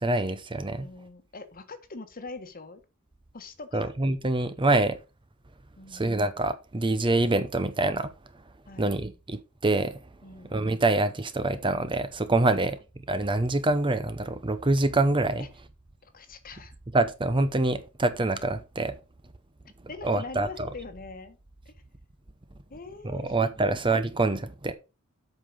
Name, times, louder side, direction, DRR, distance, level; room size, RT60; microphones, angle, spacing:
voice 1, 0.0-0.9 3.7-5.0 5.9-8.1 8.8-10.0 10.5-12.8 13.1-15.4 16.9-18.9 20.0-20.5 23.0-24.7, right 2 dB, 25° right, 0.7 m, -25 dB
voice 2, 0.8-2.8 3.3-3.9 5.8-6.1 8.7-9.0 10.2-10.6 12.5-12.8 15.4-15.5 16.0-16.7 19.9-21.4 21.6-21.7 22.7-23.8, left 3 dB, 45° left, 1.4 m, -43 dB
8.1 x 5.5 x 5.2 m
head